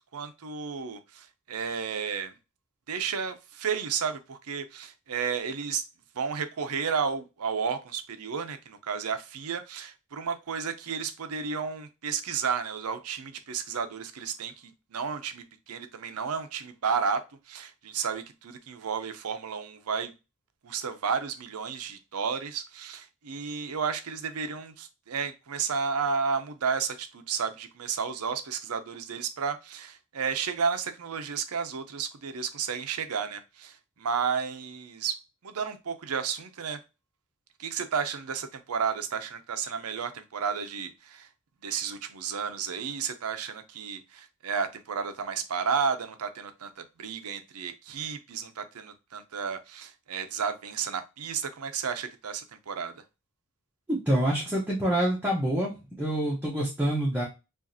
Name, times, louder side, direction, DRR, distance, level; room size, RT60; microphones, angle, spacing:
voice 1, 0.1-2.3 2.9-5.8 6.1-20.1 20.6-35.1 35.4-36.8 37.6-41.3 41.6-53.0, right 6 dB, 80° right, 0.6 m, -32 dB
voice 2, 53.9-55.7 56.0-57.2, right 1 dB, 10° right, 0.9 m, -26 dB
4.8 x 2.5 x 2.7 m
head